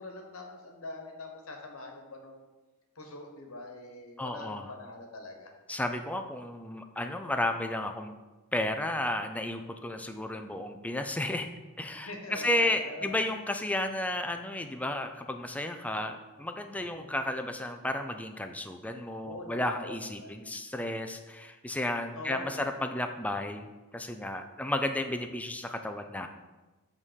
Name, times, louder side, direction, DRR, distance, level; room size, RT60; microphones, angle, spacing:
voice 1, 0.0-2.5 2.9-5.5 11.9-13.2 16.8-17.2 19.2-20.4 22.1-22.7, left 2 dB, 70° left, 3 dB, 1.3 m, -43 dB
voice 2, 4.2-4.7 5.7-8.1 8.5-11.5 11.8-26.3, left 1 dB, 5° left, 6 dB, 0.4 m, -33 dB
7.7 x 3.7 x 6.4 m, 1.2 s
head